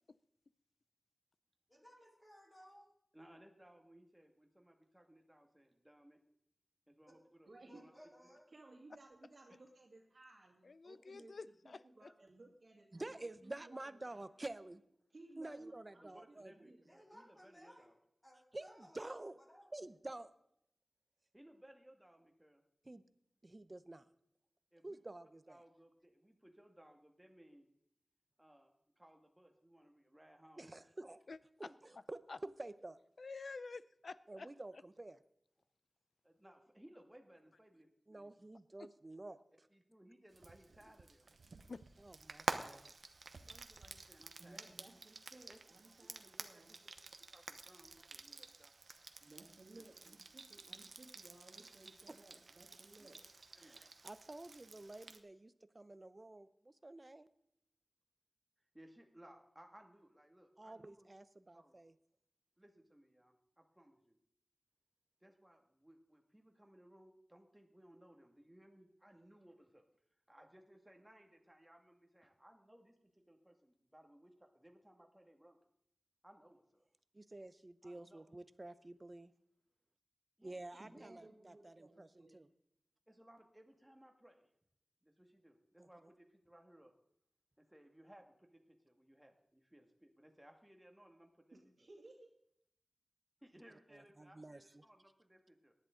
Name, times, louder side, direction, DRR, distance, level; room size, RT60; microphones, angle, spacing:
voice 1, 1.7-2.9 7.1-7.2 7.7-8.4 16.9-17.9 18.2-19.7, equal, 15° left, -2 dB, 4.1 m, -61 dB
voice 2, 3.1-6.2 6.9-7.9 8.2-8.3 9.5-9.6 15.4-15.6 16.0-18.0 21.3-22.6 24.7-25.0 25.5-27.7 28.4-30.7 31.0-31.1 31.7-31.8 36.2-38.3 39.7-41.3 43.4-44.7 45.5-45.6 46.0-46.1 46.4-46.8 47.3-48.7 49.7-50.2 53.0-53.1 53.6-53.9 58.7-61.1 61.5-61.8 62.6-64.2 65.2-69.9 70.3-75.6 76.2-76.8 77.8-78.3 80.4-81.0 83.1-84.5 85.0-86.9 87.6-91.9 93.4-95.7, right 1 dB, 10° right, 2 dB, 2.0 m, -63 dB
voice 3, 7.5-7.8 8.5-14.2 15.1-16.0 16.3-16.8 44.4-46.7 48.3-48.5 49.2-53.2 80.7-82.4 91.5-92.3, right 2 dB, 60° right, -1 dB, 2.3 m, -60 dB
voice 4, 10.6-12.1 31.3-31.7 32.3-32.4 33.2-34.5 38.8-38.9 41.7-41.9, left 4 dB, 75° left, 16 dB, 0.4 m, -49 dB
voice 5, 12.9-14.8 15.4-16.5 18.5-19.4 19.7-20.3 22.8-23.0 23.4-24.1 24.8-25.6 30.6-31.2 31.6-33.0 34.3-35.2 38.1-39.7 42.0-42.9 53.6-57.3 60.6-61.9 77.1-79.3 80.4-82.5 85.8-85.9 93.9-94.8, right 2 dB, 35° right, 13 dB, 0.7 m, -50 dB
Frying (food), 40.3-55.2, right 3 dB, 80° right, 0.8 m, -49 dB
18.0 x 11.0 x 3.9 m, 0.75 s
wide cardioid pair, 80°, 0 cm